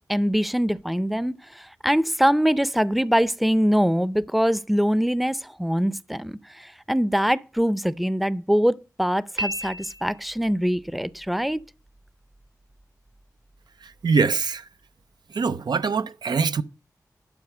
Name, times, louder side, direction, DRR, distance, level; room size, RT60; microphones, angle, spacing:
voice 1, 0.1-11.6, equal, ahead, 0.5 m, -23 dB
Piano, 9.4-10.5, equal, 60° right, 1.2 m, -32 dB
voice 2, 13.8-14.7 15.3-16.6, right 5 dB, 90° right, 0.5 m, -23 dB
11.5 x 4.8 x 6.6 m
cardioid pair, 40°, 7 cm